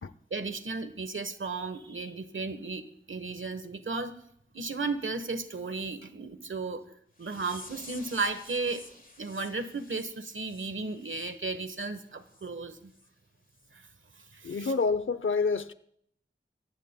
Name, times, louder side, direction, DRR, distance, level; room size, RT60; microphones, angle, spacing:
voice 1, 0.3-4.1 4.5-6.8 7.2-8.8 9.2-12.9 13.7-13.8 14.3-14.7, right 3 dB, 85° right, 1.2 m, -34 dB
sound 1, 7.2-11.9 12.3-12.5 12.9-13.1 13.6-13.7 14.2-14.3, left 2 dB, 45° left, 1.5 m, -51 dB
voice 2, 14.4-15.7, left 4 dB, 90° left, 0.7 m, -27 dB
27.0 x 15.0 x 2.2 m
wide cardioid pair, 40°, 20 cm